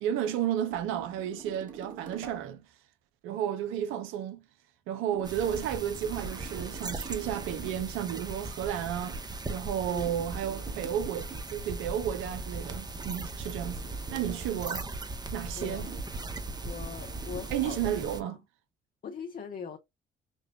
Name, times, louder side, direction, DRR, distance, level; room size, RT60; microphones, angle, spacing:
voice 1, 0.0-2.7 3.2-4.5 4.9-9.2 9.5-14.9 15.3-15.9 17.5-18.4, right 10 dB, 75° right, 0.6 m, -32 dB
sound 1, 0.7-2.5 5.1-8.0 9.0-11.6 13.0-14.6 15.9-17.7, right 6 dB, 40° right, 1.3 m, -49 dB
sound 2, 5.2-18.2, right 3 dB, 20° right, 0.7 m, -38 dB
voice 2, 9.9-10.3 12.9-13.0 13.6-14.2 15.5-15.9 16.6-18.3 19.0-19.8, left 6 dB, 45° left, 0.6 m, -42 dB
5.2 x 2.2 x 2.2 m
supercardioid pair, 60°, 21 cm